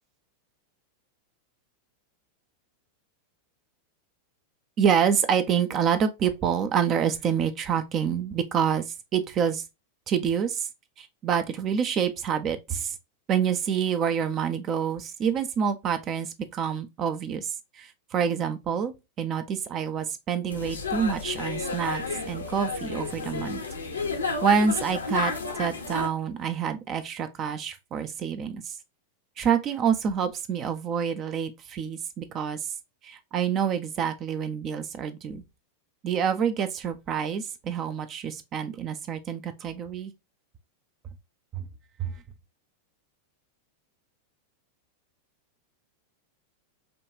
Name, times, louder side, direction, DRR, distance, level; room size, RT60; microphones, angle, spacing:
voice 1, 4.8-9.6 10.1-10.7 11.0-13.0 13.3-23.6 24.4-25.3 25.6-28.8 29.4-32.7 33.0-35.4 36.0-40.1 41.5-41.7 42.0-42.1, right 7 dB, 30° right, 0.5 m, -27 dB
sound 1, 20.5-26.1, left 4 dB, 75° left, 0.9 m, -32 dB
5.2 x 2.3 x 2.5 m
figure-of-eight pair, 90°, 0 cm